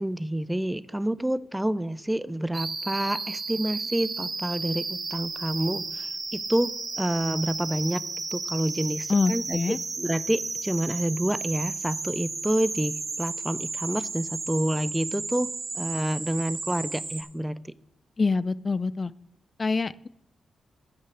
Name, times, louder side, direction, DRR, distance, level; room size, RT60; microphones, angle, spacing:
voice 1, 0.0-8.0 8.3-17.6, right 1 dB, 10° right, 18 dB, 0.5 m, -28 dB
sound 1, 2.5-17.2, right 3 dB, 45° right, 1.5 m, -33 dB
voice 2, 9.1-9.8 18.2-19.1 19.6-20.1, left 4 dB, 40° left, 19 dB, 0.4 m, -25 dB
9.1 x 5.5 x 7.9 m, 0.77 s
supercardioid pair, 45°, 0 cm